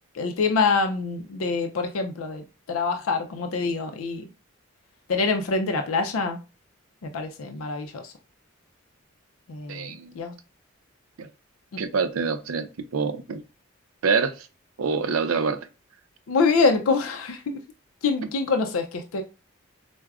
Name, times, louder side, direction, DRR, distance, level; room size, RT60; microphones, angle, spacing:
voice 1, 0.2-4.2 5.1-6.4 7.0-8.0 9.5-9.8 10.2-10.3 16.3-17.6 18.0-19.2, left 4 dB, 80° left, 0.4 m, -25 dB
voice 2, 9.7-10.1 11.2-11.3 11.8-13.4 14.0-14.5 14.8-15.7, right 5 dB, 85° right, 0.5 m, -26 dB
4.6 x 2.1 x 2.3 m
head